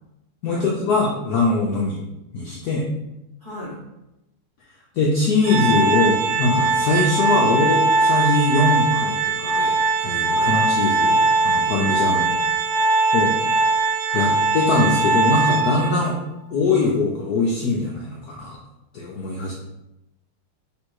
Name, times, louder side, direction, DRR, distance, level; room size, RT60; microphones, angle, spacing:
voice 1, 0.4-2.0 2.3-2.9 5.0-11.2 11.4-12.4 13.1-13.3 14.1-16.2 16.5-18.6 18.9-19.5, left 3 dB, 75° left, -3 dB, 0.8 m, -22 dB
voice 2, 3.4-3.8 10.3-10.5 14.1-14.3, left 1 dB, 50° right, -6 dB, 0.6 m, -36 dB
Organ, 5.4-16.1, right 3 dB, 70° right, 1.1 m, -20 dB
3.4 x 3.0 x 4.6 m, 0.91 s
omnidirectional pair, 2.4 m